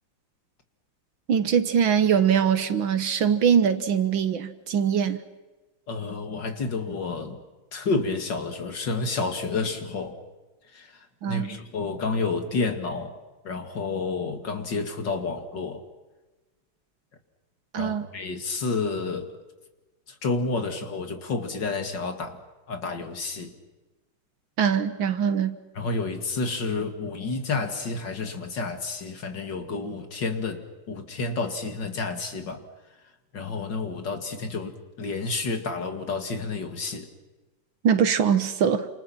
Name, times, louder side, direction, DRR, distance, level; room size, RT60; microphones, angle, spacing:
voice 1, 1.3-5.2 11.2-11.5 17.7-18.1 24.6-25.6 37.8-38.9, right 7 dB, 65° right, 1.9 m, -22 dB
voice 2, 5.9-7.4 7.7-10.2 10.7-10.9 11.3-13.1 13.4-15.8 17.8-19.3 20.2-22.4 22.7-23.5 25.8-32.6 33.3-37.1, left 3 dB, 55° left, 2.8 m, -30 dB
29.5 x 27.5 x 5.9 m
omnidirectional pair, 2.4 m